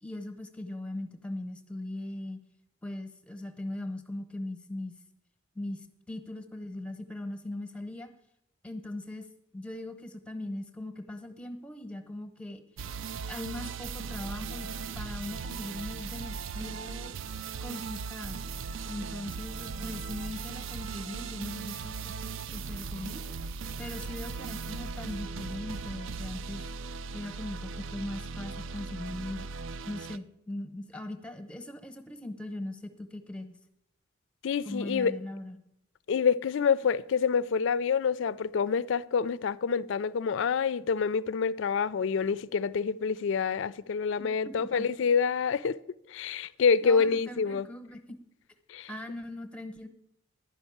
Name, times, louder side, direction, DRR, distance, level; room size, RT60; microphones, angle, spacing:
voice 1, 0.0-2.4 2.8-5.0 5.5-8.1 8.6-9.3 9.5-12.6 13.3-17.1 17.6-18.4 18.9-23.2 23.8-26.7 27.1-29.5 29.9-33.6 34.6-35.6 44.2-44.9 46.8-48.2 48.9-49.9, left 1 dB, 5° left, 0.8 m, -40 dB
sound 1, 12.8-30.2, right 5 dB, 70° right, 0.4 m, -38 dB
voice 2, 34.4-35.1 36.1-45.8 46.1-47.7 48.7-48.9, left 6 dB, 60° left, 0.3 m, -27 dB
11.0 x 5.3 x 8.5 m
head